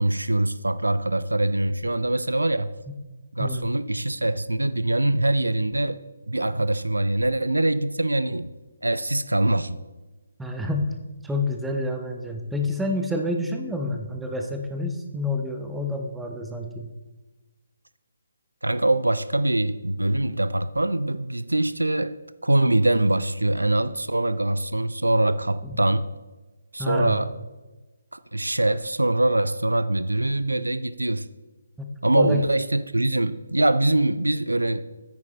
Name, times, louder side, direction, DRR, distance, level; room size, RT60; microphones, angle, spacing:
voice 1, 0.0-2.7 3.3-8.5 8.8-9.8 18.6-22.2 22.4-26.1 26.7-27.3 28.1-31.3 32.0-34.8, right 1 dB, 80° right, 0.4 m, -23 dB
voice 2, 10.4-10.9 11.2-16.9 25.6-25.8 26.8-27.2 31.8-31.9 32.2-32.4, left 2 dB, 5° right, 0.8 m, -28 dB
9.5 x 9.1 x 3.1 m
figure-of-eight pair, 145°, 0 cm